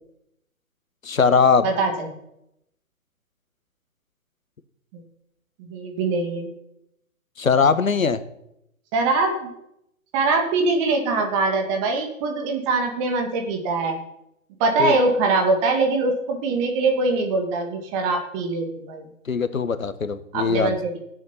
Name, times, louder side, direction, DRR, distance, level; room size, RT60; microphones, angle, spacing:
voice 1, 1.0-1.7 7.4-8.2 14.8-15.0 19.2-20.8, left 5 dB, 75° left, 12 dB, 1.4 m, -20 dB
voice 2, 1.6-2.1 4.9-5.0 5.6-6.5 8.9-9.5 10.1-14.0 14.6-19.1 20.3-20.9, right 3 dB, 20° right, 3 dB, 2.3 m, -23 dB
17.0 x 7.7 x 5.7 m, 0.82 s
figure-of-eight pair, 140°, 41 cm